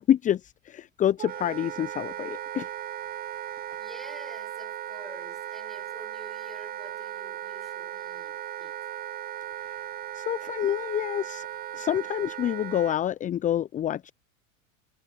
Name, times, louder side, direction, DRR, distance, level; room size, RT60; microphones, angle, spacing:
voice 1, 0.0-2.7 9.6-9.8 10.1-11.5 11.7-14.1, left 10 dB, 20° left, 0.6 m, -27 dB
Wind instrument woodwind instrument, 1.2-13.0, right 12 dB, 20° right, 0.7 m, -37 dB
voice 2, 3.8-8.8, equal, ahead, 7.1 m, -49 dB
figure-of-eight pair, 85°, 42 cm